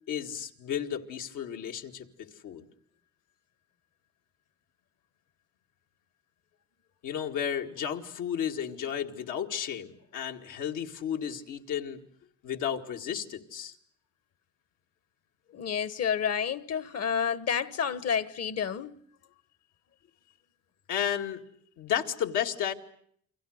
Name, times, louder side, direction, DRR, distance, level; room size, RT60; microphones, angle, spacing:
voice 1, 0.1-2.7 7.0-12.0 12.4-13.7 20.9-21.4 21.8-22.7, left 9 dB, 85° left, 2.2 m, -33 dB
voice 2, 15.5-19.0, left 7 dB, 55° left, 1.3 m, -30 dB
29.5 x 24.0 x 6.5 m
cardioid pair, 90°, 30 cm